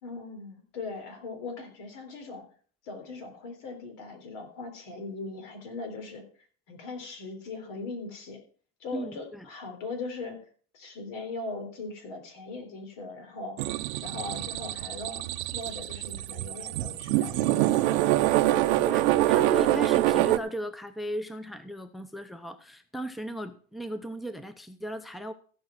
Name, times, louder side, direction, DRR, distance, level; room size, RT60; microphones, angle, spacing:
voice 1, 0.0-2.4 2.8-6.2 6.7-8.4 8.8-10.4 10.7-18.0, left 3 dB, 75° left, 5 dB, 3.9 m, -39 dB
voice 2, 8.9-9.5 18.8-25.3, right 1 dB, ahead, 11 dB, 0.8 m, -36 dB
sound 1, 13.6-20.4, right 15 dB, 90° right, 0.9 m, -25 dB
15.5 x 5.4 x 6.1 m, 0.44 s
supercardioid pair, 120°, 32 cm